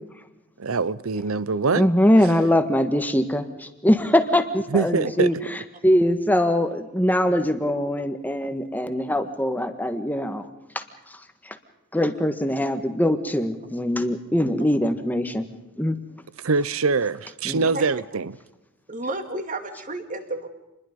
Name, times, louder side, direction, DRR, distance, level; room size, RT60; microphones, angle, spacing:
voice 1, 0.6-1.9 4.7-5.3 16.4-18.4, right 4 dB, 70° right, 0.7 m, -23 dB
voice 2, 1.7-5.3 5.8-10.5 10.7-10.8 11.4-11.6 11.9-15.4 15.8-16.0 17.4-17.6, left 1 dB, 10° left, 1.5 m, -22 dB
voice 3, 17.6-18.0 18.9-20.5, right 2 dB, 40° right, 2.3 m, -32 dB
27.5 x 21.5 x 5.3 m
head